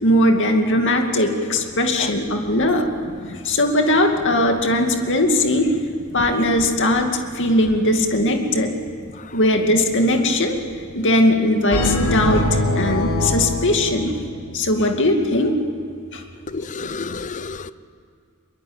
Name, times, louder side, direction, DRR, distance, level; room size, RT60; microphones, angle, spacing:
voice 1, 0.0-5.7 6.1-8.7 9.3-10.6 10.9-14.2 14.5-15.5 16.1-16.2 16.8-17.2, left 1 dB, 60° left, 4 dB, 2.4 m, -19 dB
sound 1, 11.7-14.7, left 1 dB, 80° left, 3.2 m, -23 dB
voice 2, 16.5-17.7, left 4 dB, 35° left, 14 dB, 0.7 m, -30 dB
23.0 x 23.0 x 8.8 m, 2.4 s
head